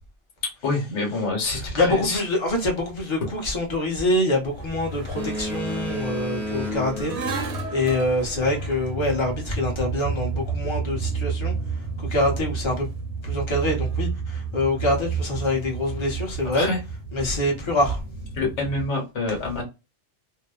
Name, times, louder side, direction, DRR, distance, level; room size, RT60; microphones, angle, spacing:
voice 1, 0.6-2.2 16.5-16.8 18.3-19.6, left 3 dB, 85° left, 1.2 m, -26 dB
voice 2, 1.5-7.1 7.4-12.9 13.2-16.7 17.1-18.0, left 1 dB, 25° left, 0.9 m, -25 dB
sound 1, 4.5-18.9, right 4 dB, 80° right, 0.9 m, -31 dB
Boat Water vehicle, 5.1-8.3, left 1 dB, ahead, 0.6 m, -32 dB
2.6 x 2.0 x 2.3 m
omnidirectional pair, 1.2 m